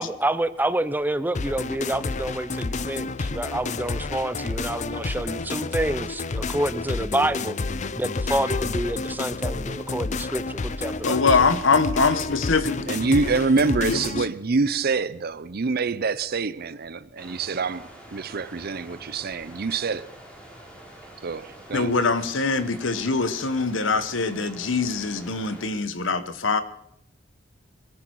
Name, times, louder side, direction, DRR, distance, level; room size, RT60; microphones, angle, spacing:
voice 1, 0.0-7.6 8.0-11.2, right 1 dB, 10° right, 0.6 m, -28 dB
sound 1, 1.3-14.3, left 3 dB, 40° left, 0.5 m, -30 dB
voice 2, 11.0-12.9 13.8-14.0 21.7-26.6, left 4 dB, 75° left, 1.1 m, -23 dB
voice 3, 12.9-20.1 21.2-21.9, right 4 dB, 55° right, 0.6 m, -26 dB
sound 2, 17.2-25.7, equal, 5° left, 3.4 m, -46 dB
21.5 x 14.0 x 4.7 m
head